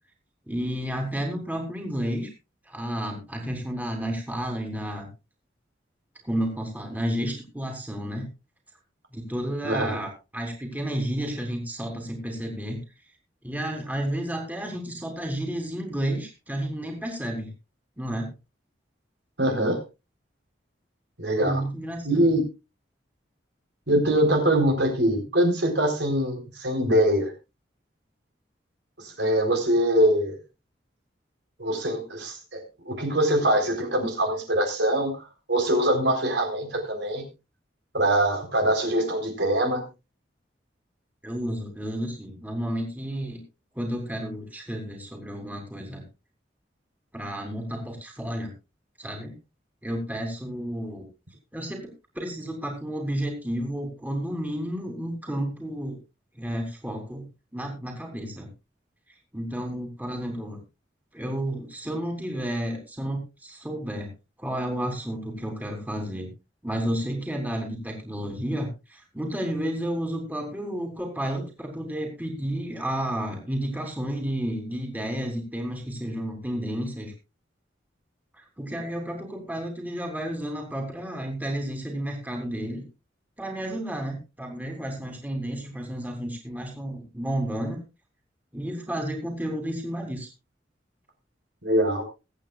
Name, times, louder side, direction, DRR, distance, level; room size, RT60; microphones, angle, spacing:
voice 1, 0.5-2.3 2.7-5.1 6.2-8.3 9.1-12.8 13.4-17.5 18.0-18.3 21.4-22.4 41.2-43.4 43.7-46.0 47.1-48.5 49.0-49.3 49.8-51.1 51.5-51.9 52.1-56.0 56.3-57.2 57.5-58.5 59.3-60.6 61.1-64.1 64.4-66.3 66.6-77.1 78.4-82.8 83.4-87.8 88.5-90.3, right 1 dB, 10° right, 1 dB, 3.2 m, -31 dB
voice 2, 9.6-10.0 19.4-19.8 21.2-21.6 22.0-22.4 23.9-27.3 29.0-30.4 31.6-35.2 35.5-37.2 37.9-39.8 91.6-92.0, right 1 dB, 70° right, 3 dB, 4.0 m, -23 dB
23.0 x 8.8 x 2.4 m, 0.27 s
head